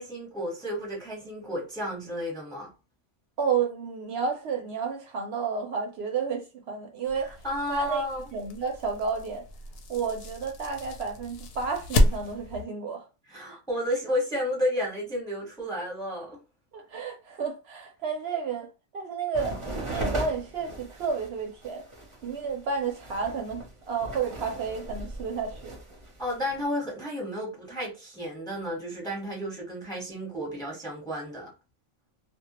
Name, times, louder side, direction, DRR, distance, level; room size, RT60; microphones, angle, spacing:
voice 1, 0.0-2.7 7.2-8.2 13.3-16.4 26.2-31.5, equal, 5° left, 0.7 m, -32 dB
voice 2, 3.4-7.4 7.7-8.1 8.3-9.4 9.9-13.0 16.7-18.7 18.9-19.6 19.9-21.8 22.2-25.7, right 5 dB, 70° right, 0.8 m, -31 dB
sound 1, 7.0-12.6, left 1 dB, 65° left, 0.7 m, -30 dB
sound 2, 19.3-26.6, right 1 dB, 35° right, 0.6 m, -37 dB
2.2 x 2.1 x 2.9 m
omnidirectional pair, 1.2 m